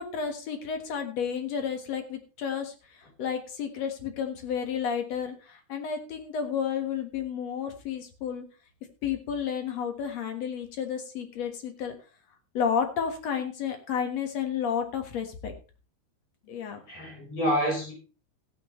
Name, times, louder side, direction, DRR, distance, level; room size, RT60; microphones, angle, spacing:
voice 1, 0.0-8.4 9.0-11.9 12.5-15.5 16.5-16.8, left 7 dB, 55° left, 2.4 m, -31 dB
voice 2, 16.4-17.9, equal, 80° left, 6.3 m, -29 dB
15.5 x 9.3 x 3.1 m
omnidirectional pair, 3.9 m